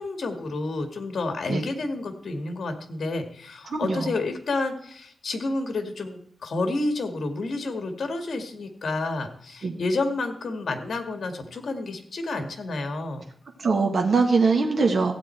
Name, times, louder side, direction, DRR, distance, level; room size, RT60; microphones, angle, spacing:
voice 1, 0.0-13.3 15.0-15.1, left 2 dB, 60° left, 6 dB, 1.8 m, -30 dB
voice 2, 3.7-4.0 9.6-9.7 13.6-15.1, right 4 dB, 55° right, 2 dB, 1.6 m, -22 dB
15.5 x 8.7 x 4.4 m, 0.66 s
wide cardioid pair, 140°, 0 cm